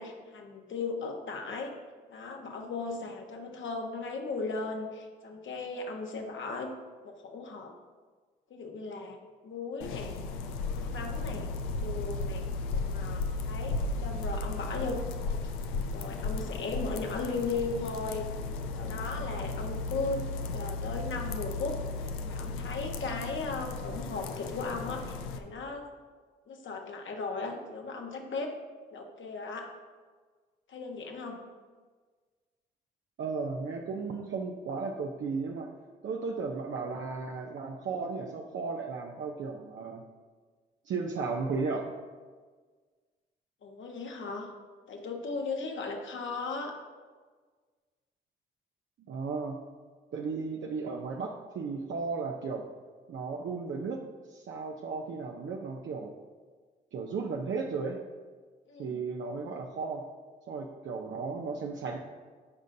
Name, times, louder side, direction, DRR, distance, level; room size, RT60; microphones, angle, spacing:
voice 1, 0.0-1.7 2.1-6.7 7.0-7.7 8.5-9.2 9.4-10.2 10.7-11.5 11.8-15.0 15.3-15.4 15.9-18.3 18.7-20.2 20.5-21.8 22.2-25.9 26.5-28.5 28.9-29.7 30.7-31.4 43.6-44.5 44.9-46.7 58.7-59.0, left 3 dB, 65° left, 2 dB, 1.4 m, -37 dB
sound 1, 9.8-25.4, left 3 dB, 90° left, 0.5 m, -35 dB
voice 2, 33.2-35.7 36.0-40.0 40.9-41.8 49.1-49.6 50.1-52.6 53.1-54.0 54.3-56.1 56.9-58.0 58.8-60.0 60.5-62.0, right 4 dB, 65° right, 0 dB, 0.7 m, -35 dB
14.0 x 5.1 x 2.7 m, 1.5 s
hypercardioid pair, 45°, 21 cm